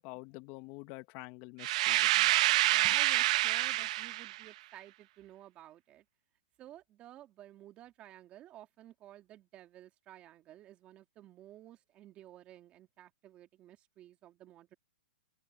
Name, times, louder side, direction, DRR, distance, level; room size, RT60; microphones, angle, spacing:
voice 1, 0.0-2.3 2.8-2.9, left 23 dB, 35° left, 1.4 m, -47 dB
sound 1, 1.6-4.4, right 17 dB, 45° right, 0.8 m, -27 dB
voice 2, 2.7-6.0 6.6-14.7, right 13 dB, 25° right, 2.5 m, -53 dB
hypercardioid pair, 150°, 5 cm